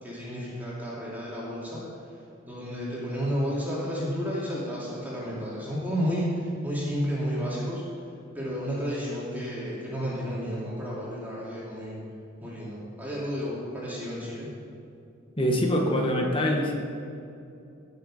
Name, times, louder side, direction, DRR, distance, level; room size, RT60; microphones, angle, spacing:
voice 1, 0.0-1.8 2.5-7.8 8.3-12.0 12.4-14.5, equal, 10° right, -7 dB, 2.7 m, -31 dB
voice 2, 15.4-16.7, equal, 25° left, 1 dB, 1.5 m, -24 dB
17.5 x 6.7 x 5.0 m, 2.6 s
head